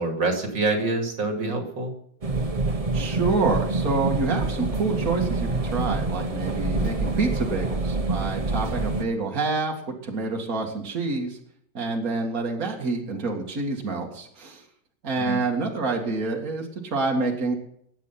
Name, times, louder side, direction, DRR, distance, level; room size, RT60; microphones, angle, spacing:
voice 1, 0.0-1.9 15.1-15.4, right 3 dB, 75° right, 3 dB, 3.2 m, -26 dB
sound 1, 2.2-9.0, right 2 dB, 35° right, 0.6 m, -26 dB
voice 2, 2.9-11.4 11.7-14.6 15.0-17.5, right 3 dB, 50° right, 0 dB, 2.5 m, -27 dB
21.0 x 8.6 x 5.8 m, 0.69 s
omnidirectional pair, 2.0 m